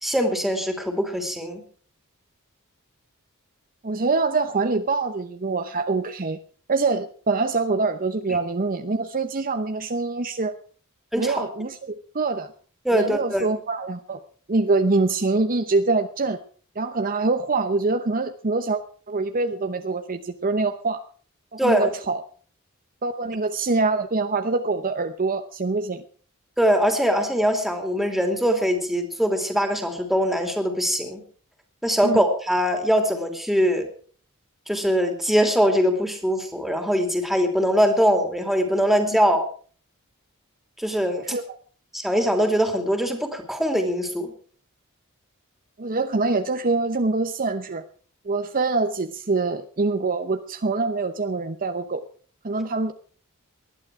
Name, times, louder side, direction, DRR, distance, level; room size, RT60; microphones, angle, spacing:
voice 1, 0.0-1.6 8.3-8.4 11.1-11.4 12.8-13.5 21.6-21.9 26.6-31.2 31.8-33.9 34.7-39.5 40.8-41.3 41.9-44.3, equal, ahead, 5 dB, 2.8 m, -22 dB
voice 2, 3.8-6.4 6.7-10.6 11.2-12.5 12.9-14.2 14.5-16.4 16.8-18.8 19.1-21.0 21.5-22.2 23.0-26.0 32.0-32.2 41.3-41.6 45.8-47.8 48.2-52.0 52.4-52.9, right 3 dB, 40° right, 8 dB, 0.8 m, -24 dB
19.5 x 11.5 x 4.8 m, 0.43 s
head